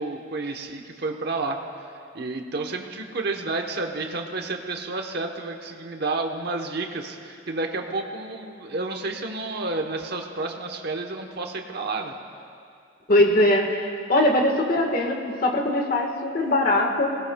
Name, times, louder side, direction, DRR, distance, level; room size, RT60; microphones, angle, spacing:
voice 1, 0.0-1.6 2.1-12.1, right 3 dB, 50° right, 3 dB, 1.0 m, -30 dB
voice 2, 13.1-13.8 14.1-17.1, left 1 dB, 45° left, 2 dB, 1.5 m, -21 dB
20.0 x 18.5 x 2.3 m, 2.4 s
head